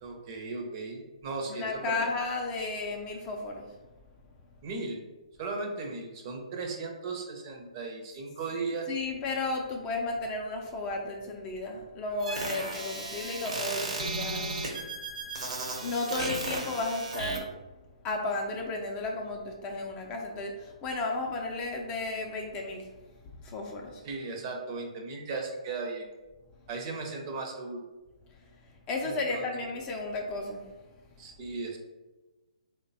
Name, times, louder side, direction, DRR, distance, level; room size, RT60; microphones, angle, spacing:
voice 1, 0.0-2.1 4.6-5.0 5.4-8.9 24.0-26.1 26.7-27.8 29.0-29.4 31.2-31.8, right 3 dB, 40° right, 1 dB, 0.7 m, -36 dB
voice 2, 1.5-3.7 8.9-14.8 15.8-17.5 18.0-22.9 23.4-24.0 28.9-30.6, left 2 dB, 25° left, 1 dB, 0.4 m, -33 dB
sound 1, 12.2-17.4, right 2 dB, 65° right, 1.0 m, -35 dB
3.2 x 2.2 x 4.0 m, 1.2 s
hypercardioid pair, 140°, 4 cm